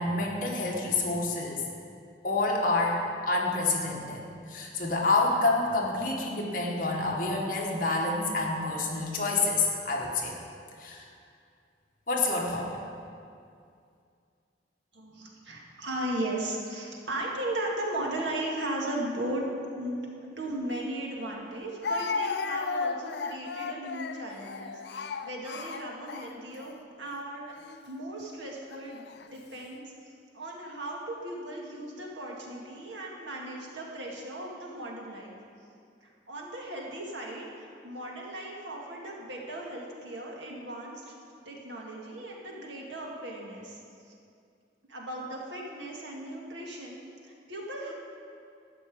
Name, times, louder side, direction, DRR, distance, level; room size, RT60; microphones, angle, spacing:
voice 1, 0.0-1.6 2.2-10.3 10.8-11.1 12.1-12.7, left 3 dB, 45° left, -2 dB, 1.9 m, -28 dB
voice 2, 14.9-19.5 19.7-27.5 27.9-29.1 29.3-29.9 30.3-35.4 36.0-41.2 41.4-44.1 44.9-47.9, right 1 dB, 80° right, -2 dB, 2.2 m, -37 dB
Speech, 20.7-20.8 21.8-26.7 27.5-27.8 28.7-29.3, left 4 dB, 65° left, 0.5 m, -34 dB
13.0 x 6.1 x 8.6 m, 2.4 s
head